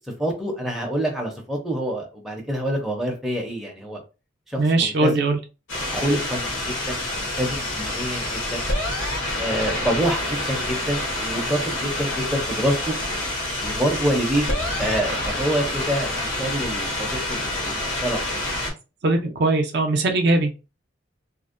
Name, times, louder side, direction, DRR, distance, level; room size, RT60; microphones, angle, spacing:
voice 1, 0.2-4.0 4.5-5.3 5.9-8.7 9.4-13.0 13.6-14.5 14.8-18.4 19.2-19.3, right 1 dB, ahead, 0.5 m, -27 dB
voice 2, 4.6-5.4 19.0-20.5, right 2 dB, 55° right, 0.4 m, -20 dB
sound 1, 5.7-18.7, left 1 dB, 80° left, 0.9 m, -27 dB
2.5 x 2.0 x 2.4 m
head